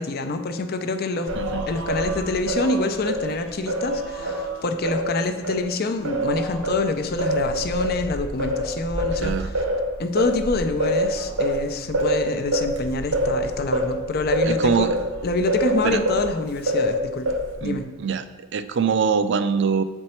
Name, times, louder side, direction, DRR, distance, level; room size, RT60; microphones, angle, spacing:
voice 1, 0.0-1.3 1.7-9.6 10.0-14.9 15.2-17.3 17.6-17.9, left 3 dB, 45° left, 8 dB, 0.5 m, -26 dB
Singing, 1.3-5.6 6.0-16.3 16.7-17.7, equal, 90° right, 1.2 m, -26 dB
voice 2, 9.2-9.5 14.4-14.9 15.8-16.0 17.6-19.8, right 6 dB, 55° right, 11 dB, 0.4 m, -23 dB
7.7 x 4.4 x 4.3 m, 1.3 s
head